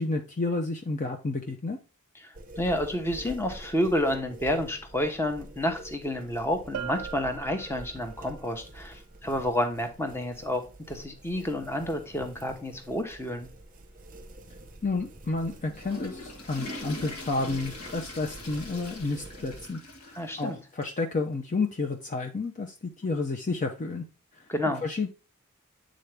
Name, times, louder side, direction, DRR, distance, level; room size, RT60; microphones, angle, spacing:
voice 1, 0.0-1.8 14.8-24.0 24.3-24.4 24.8-25.1, left 3 dB, 35° left, 4 dB, 0.6 m, -31 dB
voice 2, 2.2-13.5 20.1-20.6 24.5-24.8, left 1 dB, 10° left, 6 dB, 0.9 m, -30 dB
sound 1, 2.3-19.7, right 1 dB, 40° right, 0.8 m, -47 dB
Bell, 6.7-8.3, right 10 dB, 70° right, 0.3 m, -39 dB
Water / Toilet flush, 15.5-20.5 20.8-20.9 21.6-21.7 23.0-23.1, left 2 dB, 75° left, 1.5 m, -42 dB
8.4 x 3.8 x 3.3 m, 0.31 s
head